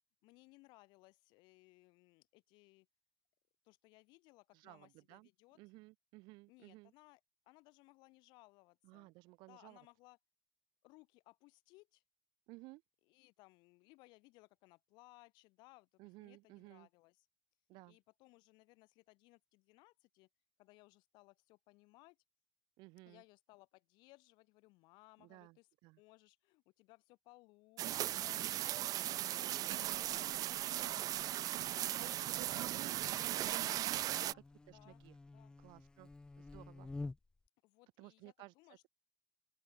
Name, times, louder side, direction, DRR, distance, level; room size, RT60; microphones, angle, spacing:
voice 1, 0.2-2.9 3.6-5.6 6.5-7.2 7.5-9.1 9.5-10.2 10.8-12.0 13.1-17.3 17.9-20.3 20.6-22.2 23.1-25.7 26.0-28.4 28.9-29.6 29.9-30.4 30.7-31.3 31.8-32.6 33.9-34.4 34.7-35.0 35.3-35.6 37.6-38.9, left 23 dB, 90° left, 5.3 m, -64 dB
voice 2, 4.5-5.3 5.6-6.9 8.8-9.8 12.5-12.8 16.0-16.9 17.7-18.0 22.8-23.2 25.2-26.0 29.0-30.1 31.5-35.2 35.6-36.1 36.4-36.9 38.0-38.5, right 23 dB, 90° right, 2.4 m, -56 dB
sound 1, 27.8-34.3, right 13 dB, 55° right, 0.9 m, -37 dB
Buzz, 29.7-37.5, left 3 dB, 10° left, 0.7 m, -53 dB
open air
cardioid pair, 150°, 7 cm